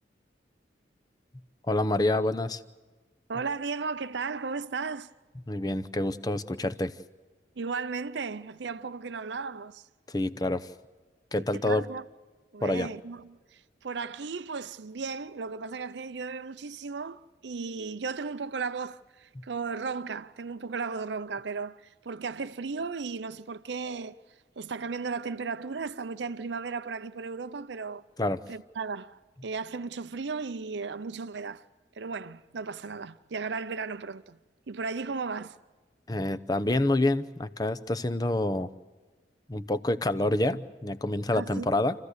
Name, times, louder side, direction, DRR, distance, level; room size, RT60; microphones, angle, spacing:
voice 1, 1.7-2.6 5.5-6.9 10.1-10.7 11.3-11.8 12.6-12.9 28.2-28.4 36.1-38.7 39.5-41.9, left 1 dB, 20° left, 0.7 m, -27 dB
voice 2, 3.3-5.1 7.6-9.9 11.4-12.1 12.5-28.0 28.5-31.7 31.9-34.4 34.7-35.6 41.3-41.7, right 4 dB, 70° right, 0.6 m, -35 dB
28.5 x 15.0 x 8.1 m
head